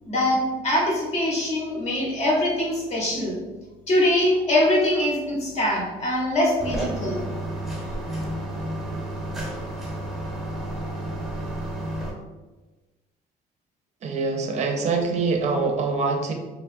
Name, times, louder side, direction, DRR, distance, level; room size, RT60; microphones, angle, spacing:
voice 1, 0.0-3.4 3.9-7.3, left 1 dB, 40° left, -3 dB, 0.9 m, -23 dB
sound 1, 6.6-12.1, right 1 dB, ahead, 0.8 m, -31 dB
voice 2, 14.0-16.3, right 4 dB, 40° right, 3 dB, 0.5 m, -24 dB
3.0 x 2.2 x 2.5 m, 1.2 s
cardioid pair, 110°, 17 cm